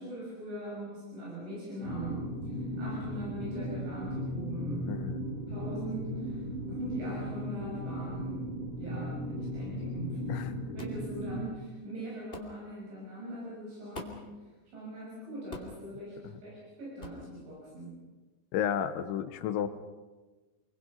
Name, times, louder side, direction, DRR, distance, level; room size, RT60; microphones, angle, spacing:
voice 1, 0.0-4.9 5.5-6.4 6.7-10.2 10.7-14.2 14.7-16.2 16.4-18.0, right 1 dB, 65° right, -5 dB, 9.0 m, -41 dB
sound 1, 1.8-11.5, equal, 45° right, 5.9 m, -36 dB
voice 2, 4.9-5.2 10.3-10.6 18.5-19.7, left 9 dB, 75° left, 9 dB, 3.3 m, -32 dB
sound 2, 10.8-11.0 12.3-12.5 13.9-14.3 15.5-15.8 17.0-17.2, left 2 dB, 25° left, 1.4 m, -43 dB
29.0 x 23.5 x 5.5 m, 1.2 s
omnidirectional pair, 5.7 m